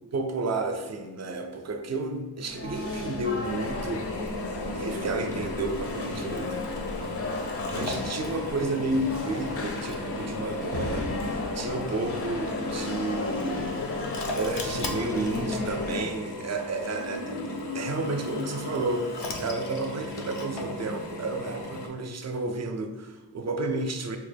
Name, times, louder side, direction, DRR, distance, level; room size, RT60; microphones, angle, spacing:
voice 1, 0.1-4.1 4.7-6.7 7.7-13.9 14.1-17.4 17.7-24.2, right 2 dB, 40° right, 6 dB, 0.4 m, -31 dB
sound 1, 2.4-16.0, left 2 dB, 35° left, 0.4 m, -34 dB
Drill, 3.4-21.9, left 2 dB, 85° left, 0.6 m, -37 dB
3.7 x 2.1 x 3.3 m, 1.2 s
wide cardioid pair, 75°, 41 cm